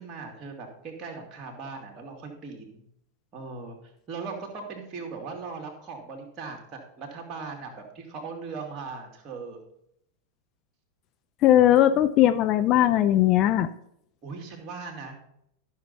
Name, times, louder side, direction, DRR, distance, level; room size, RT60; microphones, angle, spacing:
voice 1, 0.0-2.8 3.3-3.8 4.1-6.6 7.0-9.6 14.2-15.3, right 4 dB, 30° right, 1 dB, 2.7 m, -39 dB
voice 2, 11.4-13.7, left 12 dB, 35° left, 11 dB, 0.5 m, -19 dB
13.0 x 6.6 x 4.2 m, 0.72 s
figure-of-eight pair, 90°, 0 cm